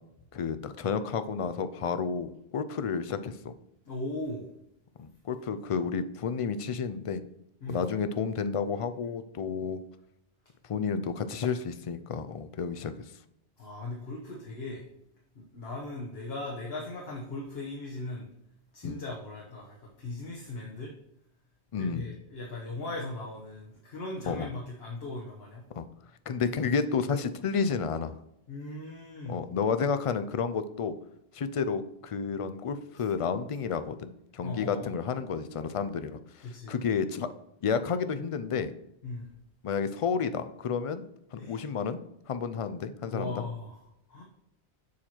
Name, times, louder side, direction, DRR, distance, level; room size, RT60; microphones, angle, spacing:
voice 1, 0.3-3.5 5.0-7.2 7.7-9.8 10.7-12.9 18.8-19.0 21.7-22.1 24.3-24.5 25.7-25.8 26.3-28.1 29.3-30.9 31.3-37.3 37.6-38.7 39.6-41.0 41.3-42.0 42.3-43.5, left 6 dB, 55° left, 11 dB, 0.3 m, -31 dB
voice 2, 3.8-4.5 7.6-7.9 13.6-14.9 15.3-18.3 18.7-20.9 21.8-25.6 28.5-29.4 34.4-34.9 36.4-36.8 39.0-39.3 41.4-41.7 43.1-43.8 44.1-44.2, left 2 dB, 70° left, -3 dB, 1.4 m, -38 dB
7.2 x 4.4 x 4.3 m, 0.80 s
omnidirectional pair, 1.1 m